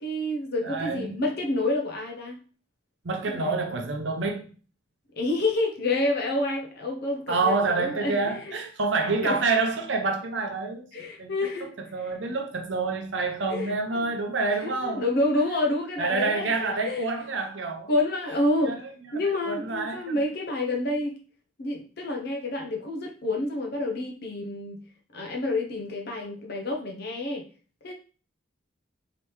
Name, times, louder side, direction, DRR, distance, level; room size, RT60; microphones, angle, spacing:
voice 1, 0.0-2.4 3.3-3.6 5.2-8.5 9.2-9.4 10.9-11.7 12.0-12.1 13.5-14.0 14.6-17.1 17.9-18.7 19.1-21.2 21.6-24.8 25.1-27.4 27.8-27.9, left 2 dB, 55° left, 0.6 m, -28 dB
voice 2, 0.6-1.2 3.0-4.5 7.3-10.9 11.2-11.3 11.9-15.0 16.0-17.9 18.6-18.8 19.1-19.2 19.4-20.2, right 3 dB, 70° right, 0.7 m, -27 dB
3.3 x 2.9 x 3.0 m
head